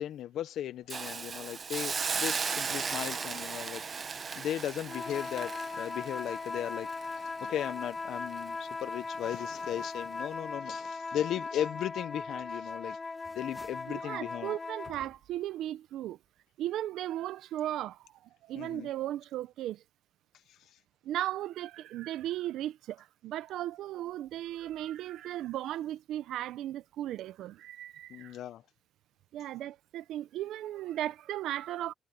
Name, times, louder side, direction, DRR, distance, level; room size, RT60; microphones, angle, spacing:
voice 1, 0.0-13.0 13.4-14.5 18.5-18.9 20.5-20.8 28.1-28.6, left 11 dB, 75° left, 0.8 m, -37 dB
Hiss, 0.9-7.9 8.3-8.5, right 5 dB, 40° right, 1.0 m, -36 dB
sound 1, 4.8-15.0, left 4 dB, 25° left, 0.4 m, -39 dB
sound 2, 13.0-14.0 14.8-15.5, left 1 dB, 10° left, 3.5 m, -57 dB
voice 2, 13.9-16.2 16.6-19.8 21.0-28.4 29.3-31.9, right 13 dB, 80° right, 0.6 m, -36 dB
cardioid pair, 90°, 0 cm